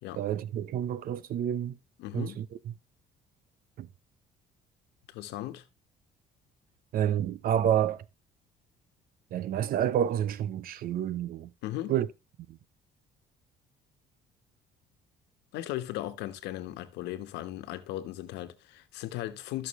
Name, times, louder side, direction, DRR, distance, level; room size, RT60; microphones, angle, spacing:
voice 1, 0.2-1.8 2.1-2.5 3.8-3.9 6.9-8.0 9.3-11.5 11.9-12.1, right 10 dB, 60° right, 0.7 m, -29 dB
voice 2, 2.0-2.4 5.1-5.6 11.6-12.0 15.5-19.7, left 14 dB, 90° left, 1.2 m, -37 dB
13.0 x 6.5 x 3.1 m
cardioid pair, 110°, 17 cm